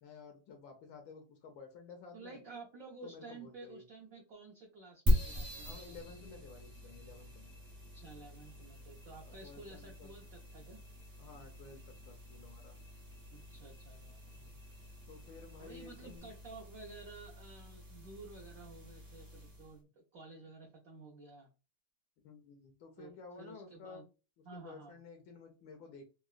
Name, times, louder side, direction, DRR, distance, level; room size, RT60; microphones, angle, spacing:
voice 1, 0.0-2.4 3.0-3.8 5.6-7.5 9.2-10.1 11.2-12.8 15.1-16.3 22.2-24.0 24.4-26.1, left 4 dB, 75° left, 3 dB, 1.3 m, -53 dB
voice 2, 2.1-6.0 7.9-10.8 13.3-14.6 15.6-21.5 23.0-23.1 23.4-24.1 24.5-25.0, right 3 dB, 80° right, -1 dB, 0.7 m, -52 dB
sound 1, 5.1-19.8, equal, 60° right, 0.3 m, -40 dB
3.8 x 2.2 x 2.3 m, 0.31 s
omnidirectional pair, 2.3 m